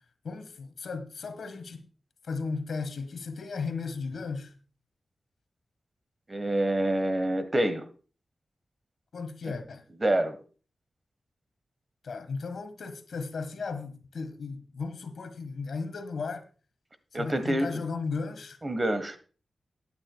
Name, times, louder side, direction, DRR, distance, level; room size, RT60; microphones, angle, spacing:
voice 1, 0.2-1.8 2.2-4.5 9.1-9.8 12.0-16.4 17.1-18.6, left 4 dB, 85° left, 1.4 m, -35 dB
voice 2, 6.3-7.9 10.0-10.4 17.1-17.8 18.6-19.2, right 1 dB, 25° right, 1.2 m, -27 dB
17.5 x 9.0 x 2.3 m
wide cardioid pair, 115°, 0 cm